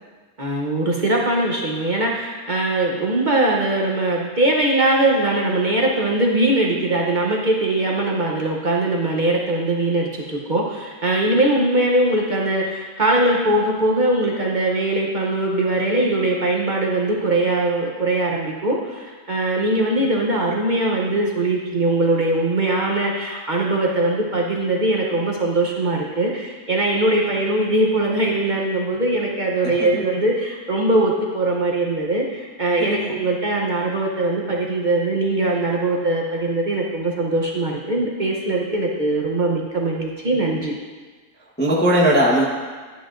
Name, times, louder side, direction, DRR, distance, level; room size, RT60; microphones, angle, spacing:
voice 1, 0.4-40.7, right 2 dB, 40° right, -2 dB, 0.7 m, -21 dB
voice 2, 29.6-30.0 32.8-33.1 41.6-42.4, equal, 10° left, -3 dB, 0.7 m, -19 dB
10.5 x 9.2 x 2.5 m, 1.4 s
omnidirectional pair, 1.8 m